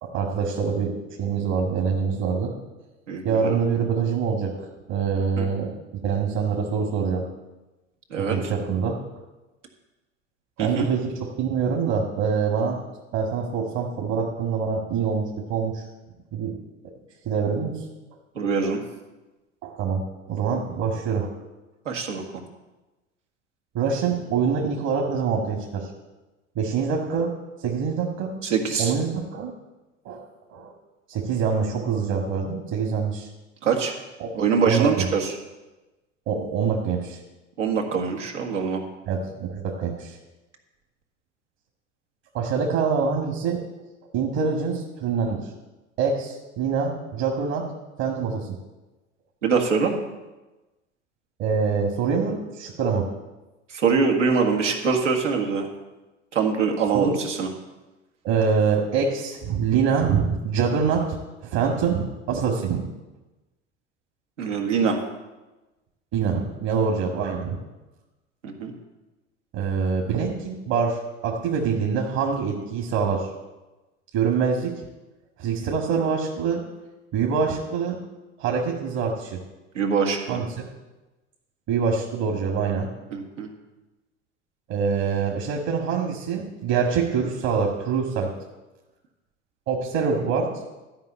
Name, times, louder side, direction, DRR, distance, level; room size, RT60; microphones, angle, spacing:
voice 1, 0.0-0.9 1.2-2.5 3.2-4.5 4.9-5.7 6.0-7.2 8.2-9.0 10.6-12.8 13.1-15.8 16.3-16.6 17.3-17.7 19.6-20.0 20.3-21.3 23.7-25.9 26.6-27.3 27.6-28.3 28.8-29.5 30.1-30.2 30.5-30.7 31.1-33.3 34.2-34.3 34.7-35.1 36.3-37.2 39.0-40.2 42.3-43.6 44.1-45.5 46.0-47.7 48.0-48.5 51.4-53.1 56.9-57.2 58.2-61.0 61.4-62.8 66.1-67.6 69.5-71.0 71.2-73.3 74.1-74.7 75.4-76.6 77.1-78.0 78.4-79.4 80.3-80.7 81.7-82.9 84.7-88.3 89.7-90.5, right 6 dB, 50° right, 0 dB, 2.0 m, -25 dB
voice 2, 3.1-3.6 5.4-5.5 8.1-8.4 10.6-10.9 18.4-18.8 21.9-22.2 28.4-28.9 33.6-34.0 34.3-35.4 37.6-38.8 49.4-49.9 53.7-55.7 56.3-57.5 64.4-65.0 68.4-68.7 79.8-80.4 83.1-83.5, right 5 dB, 80° right, 1 dB, 2.0 m, -23 dB
13.5 x 5.6 x 8.2 m, 1.1 s
figure-of-eight pair, 75°, 36 cm